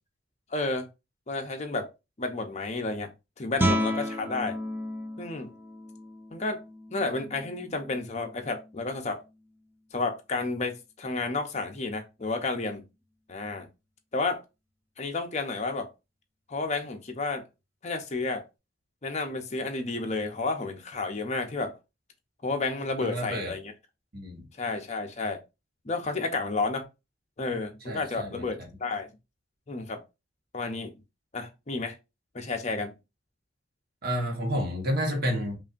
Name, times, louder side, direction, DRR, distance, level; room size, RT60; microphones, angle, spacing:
voice 1, 0.5-0.9 1.3-1.9 2.2-3.1 3.4-4.6 5.2-5.5 6.3-6.6 6.9-9.2 9.9-12.8 13.3-13.7 14.1-14.4 15.0-15.9 16.5-17.4 17.8-18.4 19.0-21.8 22.4-23.7 24.6-25.4 25.8-26.8 27.4-29.1 29.7-30.0 30.5-30.9 31.3-32.0 32.3-32.9, left 3 dB, 35° left, 0.7 m, -31 dB
Guitar, 3.5-9.1, equal, 10° right, 0.5 m, -33 dB
voice 2, 23.0-23.5 24.1-24.4 27.9-28.5 34.0-35.6, equal, 50° right, 1.1 m, -30 dB
5.4 x 2.5 x 2.4 m
head